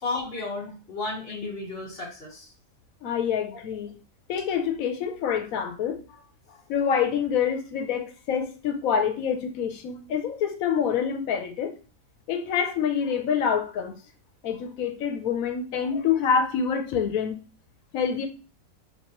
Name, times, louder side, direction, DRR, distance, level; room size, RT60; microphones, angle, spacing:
voice 1, 0.0-2.5 3.5-3.6, left 3 dB, 60° left, 1.6 m, -33 dB
voice 2, 3.0-3.9 4.3-6.0 6.7-11.7 12.3-13.9 14.4-17.4 17.9-18.3, left 7 dB, 85° left, 1.1 m, -26 dB
4.7 x 2.9 x 2.9 m
omnidirectional pair, 1.4 m